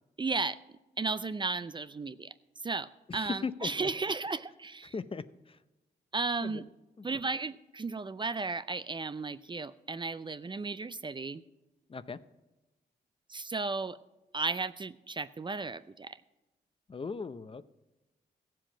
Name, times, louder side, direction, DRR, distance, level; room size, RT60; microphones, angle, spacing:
voice 1, 0.2-0.6 1.0-2.3 2.6-4.9 6.1-6.7 7.0-11.4 13.3-14.0 14.3-16.2, right 3 dB, 30° right, 14 dB, 0.4 m, -34 dB
voice 2, 3.1-3.9 4.9-5.2 6.4-6.6 7.0-7.1 11.9-12.2 16.9-17.6, left 4 dB, 30° left, 14 dB, 0.5 m, -38 dB
15.5 x 7.7 x 5.0 m, 1.0 s
cardioid pair, 75°, 17 cm